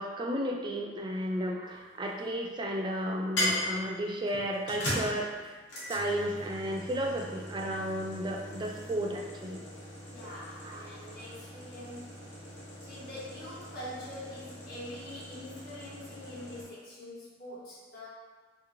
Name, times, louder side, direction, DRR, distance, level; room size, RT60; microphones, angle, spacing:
voice 1, 0.0-5.6 5.9-9.7 10.6-10.8, equal, 25° right, 0 dB, 0.3 m, -33 dB
voice 2, 1.2-1.5 10.1-12.2 12.8-18.1, left 1 dB, 55° left, -9 dB, 1.2 m, -45 dB
sound 1, 1.6-2.3 3.4-16.6, left 1 dB, 75° left, 1.0 m, -39 dB
3.4 x 2.9 x 2.5 m, 1.3 s
head